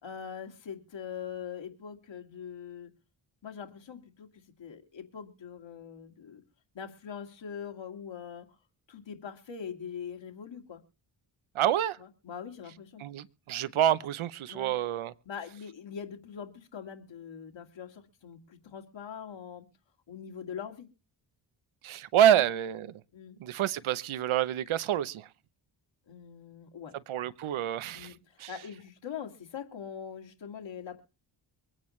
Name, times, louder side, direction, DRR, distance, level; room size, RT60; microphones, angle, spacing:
voice 1, 0.0-2.9 3.4-6.4 6.7-8.5 8.9-10.8 12.0-13.0 14.5-14.7 15.3-19.7 20.1-20.9 22.3-22.4 23.1-23.4 26.1-26.9 27.9-31.0, left 7 dB, 65° left, 2.2 m, -42 dB
voice 2, 11.5-12.0 13.0-15.1 21.8-22.9 23.4-25.3 27.1-28.1 28.4-28.5, right 11 dB, 80° right, 0.8 m, -27 dB
23.5 x 8.9 x 3.2 m
cardioid pair, 55°, 48 cm